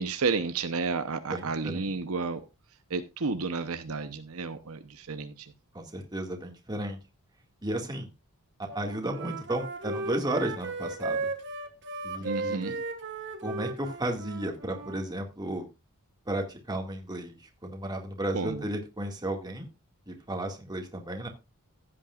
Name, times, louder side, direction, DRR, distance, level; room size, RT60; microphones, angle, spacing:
voice 1, 0.0-2.4 2.9-5.5 12.2-12.8 18.3-18.6, right 4 dB, 70° right, 9 dB, 0.8 m, -31 dB
voice 2, 1.3-1.9 5.7-7.0 7.6-8.1 8.7-11.3 12.0-12.8 13.4-15.7 16.3-19.7 20.1-21.3, right 1 dB, 20° right, 2 dB, 2.0 m, -33 dB
Wind instrument woodwind instrument, 8.7-15.0, right 3 dB, 55° right, 1.5 m, -36 dB
15.5 x 8.7 x 2.4 m, 0.26 s
head